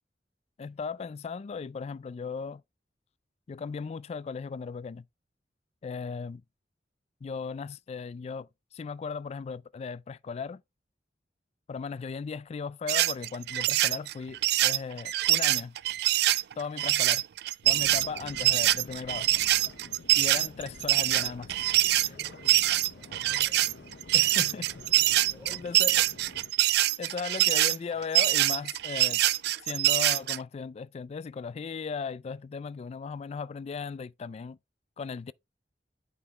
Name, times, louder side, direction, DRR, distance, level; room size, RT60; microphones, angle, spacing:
voice 1, 0.6-2.6 3.5-5.0 5.8-6.4 7.2-10.6 11.7-15.8 16.6-17.2 17.7-19.3 20.2-21.6 22.0-22.1 24.1-24.7 25.5-26.0 27.0-29.2 29.6-34.6 35.0-35.3, left 5 dB, 35° left, 0.3 m, -37 dB
sound 1, 12.9-30.4, right 15 dB, 65° right, 0.3 m, -24 dB
sound 2, 17.6-26.5, left 3 dB, 70° left, 0.8 m, -48 dB
voice 2, 22.0-25.8, equal, 10° right, 5.0 m, -55 dB
8.4 x 5.4 x 3.1 m
head